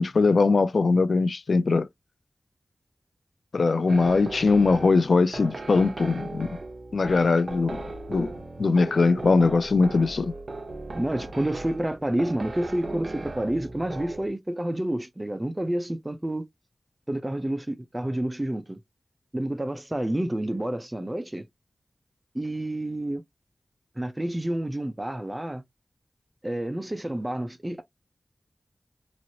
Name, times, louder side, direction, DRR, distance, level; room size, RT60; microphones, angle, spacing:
voice 1, 0.0-1.9 3.5-6.5 6.9-7.8 8.1-8.3 8.6-10.3, left 4 dB, 75° left, 0.4 m, -21 dB
sound 1, 3.9-14.3, right 2 dB, 60° right, 0.7 m, -38 dB
voice 2, 10.9-16.5 17.1-18.8 19.3-21.5 22.3-23.2 24.0-25.6 26.4-27.8, right 1 dB, 20° right, 0.4 m, -29 dB
3.0 x 2.5 x 2.7 m
wide cardioid pair, 80°, 0 cm